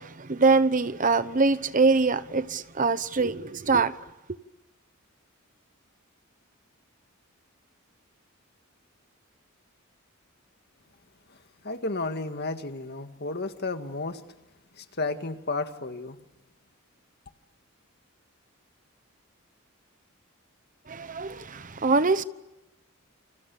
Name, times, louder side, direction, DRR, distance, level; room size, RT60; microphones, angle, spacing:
voice 1, 0.0-3.9 20.9-22.2, right 4 dB, 40° right, 1.0 m, -23 dB
voice 2, 11.6-14.2 14.8-16.2, left 3 dB, 50° left, 2.0 m, -32 dB
28.0 x 27.5 x 7.1 m
head